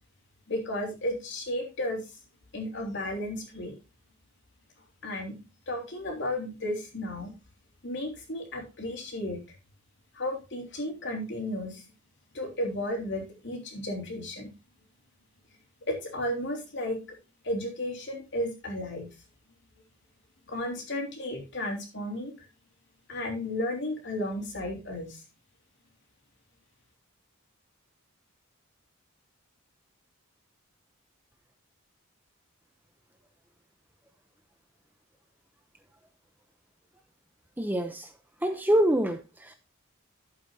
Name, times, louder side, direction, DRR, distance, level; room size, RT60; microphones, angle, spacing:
voice 1, 0.5-2.1 2.5-3.8 5.0-7.3 7.8-9.4 10.1-11.9 12.3-14.5 15.9-17.0 17.4-19.1 20.5-22.5 23.1-25.2, left 1 dB, 55° left, 1 dB, 3.2 m, -33 dB
voice 2, 37.6-38.1 38.4-39.5, right 1 dB, 10° right, 6 dB, 0.6 m, -25 dB
11.5 x 8.2 x 2.7 m, 0.28 s
head